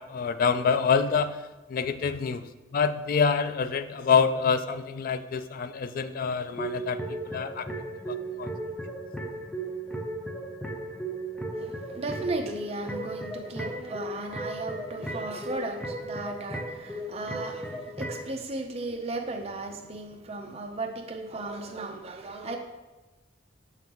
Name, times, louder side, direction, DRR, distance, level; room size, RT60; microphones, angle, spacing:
voice 1, 0.1-1.4 1.7-2.4 2.7-7.0 7.3-7.6 8.1-8.5, left 6 dB, 50° left, 12 dB, 0.3 m, -26 dB
sound 1, 6.5-18.3, right 1 dB, 5° left, 0.6 m, -36 dB
voice 2, 11.5-22.6, right 2 dB, 35° right, 3 dB, 0.7 m, -35 dB
6.1 x 5.7 x 3.0 m, 1.1 s
head